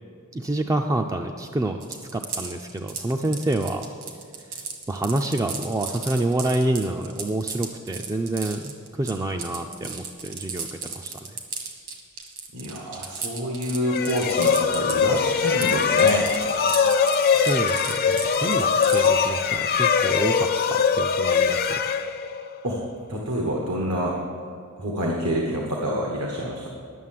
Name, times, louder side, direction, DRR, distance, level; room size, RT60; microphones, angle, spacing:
voice 1, 0.3-1.8 2.1-3.9 4.5-11.2 17.2-21.8, right 1 dB, 15° right, 4 dB, 0.4 m, -28 dB
sound 1, 1.8-15.2 15.4-19.2, right 5 dB, 60° right, 1.6 m, -35 dB
voice 2, 12.5-16.3 17.2-17.4 22.6-22.8 23.1-24.1 24.8-26.7, equal, 80° right, -1 dB, 1.3 m, -27 dB
sound 2, 13.9-22.6, left 6 dB, 45° left, 0.5 m, -22 dB
11.0 x 6.7 x 7.5 m, 2.4 s
head